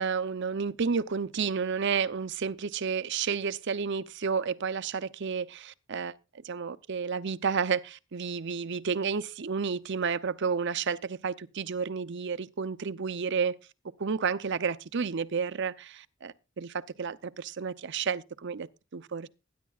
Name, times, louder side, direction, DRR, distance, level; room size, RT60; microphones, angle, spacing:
voice 1, 0.0-6.1 6.4-13.6 14.0-19.3, right 6 dB, 60° right, 0.6 m, -31 dB
21.5 x 10.0 x 2.4 m
head